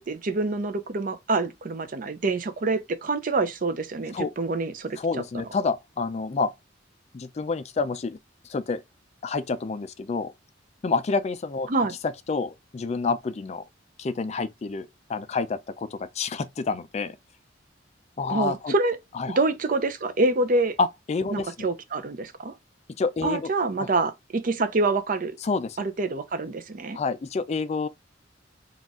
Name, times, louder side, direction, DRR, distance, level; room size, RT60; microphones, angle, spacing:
voice 1, 0.0-5.0 11.7-11.9 18.3-19.0 19.4-20.8 21.3-22.5 23.2-25.4 25.8-27.0, right 3 dB, 45° right, 0.5 m, -26 dB
voice 2, 5.0-6.5 7.1-8.2 8.5-8.8 9.2-10.3 10.8-11.7 12.3-13.6 14.0-17.2 18.2-18.7 19.1-19.4 20.8-21.7 23.0-23.5 23.8-23.9 25.4-25.8 26.9-27.9, left 4 dB, 35° left, 0.3 m, -28 dB
3.9 x 2.4 x 3.5 m
head